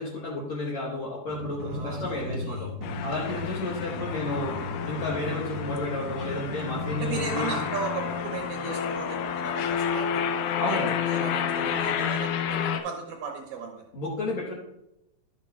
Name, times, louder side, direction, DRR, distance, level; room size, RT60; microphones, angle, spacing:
voice 1, 0.0-2.7 3.0-4.6 4.9-7.6 10.6-11.0 13.9-14.5, left 2 dB, 65° left, -4 dB, 1.9 m, -32 dB
sound 1, 1.3-8.1, left 2 dB, 90° right, 1.2 m, -36 dB
voice 2, 1.6-2.7 3.3-3.4 7.0-10.2 10.6-13.8, right 5 dB, 70° right, 0 dB, 2.3 m, -36 dB
sound 2, 2.8-12.8, left 8 dB, 90° left, 1.9 m, -30 dB
12.5 x 7.8 x 2.3 m, 0.86 s
omnidirectional pair, 4.8 m